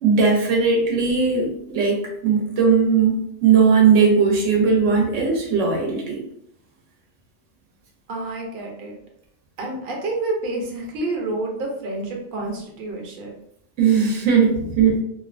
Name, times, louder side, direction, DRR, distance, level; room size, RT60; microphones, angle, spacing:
voice 1, 0.0-3.2 3.4-6.2 13.8-15.0, right 5 dB, 85° right, 0 dB, 1.0 m, -18 dB
voice 2, 8.1-9.0 9.6-13.3 14.5-14.7, right 2 dB, 55° right, 0 dB, 0.8 m, -29 dB
2.7 x 2.0 x 2.4 m, 0.72 s
omnidirectional pair, 1.2 m